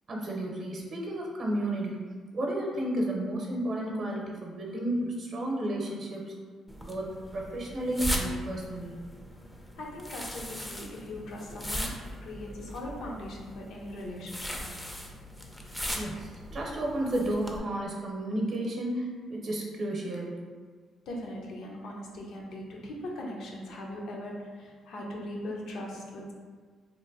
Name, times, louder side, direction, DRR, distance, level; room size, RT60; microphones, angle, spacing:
voice 1, 0.1-2.0 2.3-6.3 6.8-9.1 16.0-20.4, right 1 dB, 45° right, -1 dB, 0.7 m, -32 dB
sound 1, 6.7-17.6, equal, 10° left, 0.4 m, -38 dB
voice 2, 9.8-14.6 21.1-26.3, left 1 dB, 75° left, -2 dB, 0.7 m, -40 dB
2.9 x 2.1 x 3.9 m, 1.6 s
cardioid pair, 90°, 0 cm